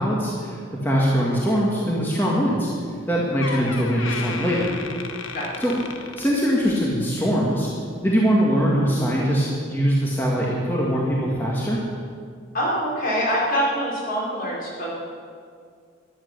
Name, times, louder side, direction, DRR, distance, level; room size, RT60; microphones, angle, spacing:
voice 1, 0.0-2.7 3.1-4.7 5.6-7.7 8.0-11.8, equal, 10° left, -5 dB, 1.9 m, -22 dB
Door, 2.9-3.1 3.4-6.9 7.2-7.5 8.3-8.4, left 5 dB, 90° left, 1.2 m, -35 dB
voice 2, 12.5-14.9, equal, 50° left, -4 dB, 4.7 m, -25 dB
13.5 x 11.0 x 6.7 m, 2.1 s
head